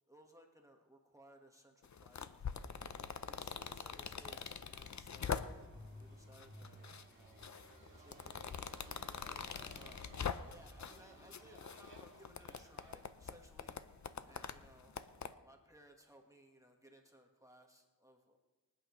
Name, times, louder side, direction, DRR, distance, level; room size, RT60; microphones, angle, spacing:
voice 1, 0.1-2.7 3.3-7.5 8.0-8.9 9.7-10.1 10.4-13.8 14.2-18.4, right 1 dB, 10° right, 2 dB, 1.5 m, -63 dB
sound 1, 1.8-5.8 6.3-7.0 7.4-11.0 11.3-15.3, left 6 dB, 55° left, 0.7 m, -44 dB
Motorcycle, 2.5-15.2, equal, 35° right, 2.0 m, -60 dB
sound 2, 5.5-11.7, right 4 dB, 75° right, 1.7 m, -64 dB
25.0 x 8.8 x 3.2 m, 1.2 s
wide cardioid pair, 65°, 34 cm